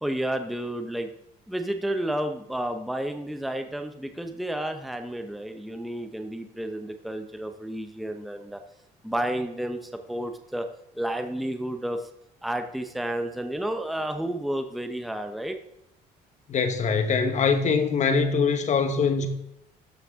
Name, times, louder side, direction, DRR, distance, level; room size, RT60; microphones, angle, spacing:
voice 1, 0.0-1.1 1.5-8.6 9.0-10.7 11.0-12.0 12.4-15.6, right 1 dB, ahead, 0.8 m, -31 dB
voice 2, 16.5-19.3, left 5 dB, 45° left, 1.3 m, -23 dB
13.0 x 6.5 x 3.6 m
cardioid pair, 110°, 17 cm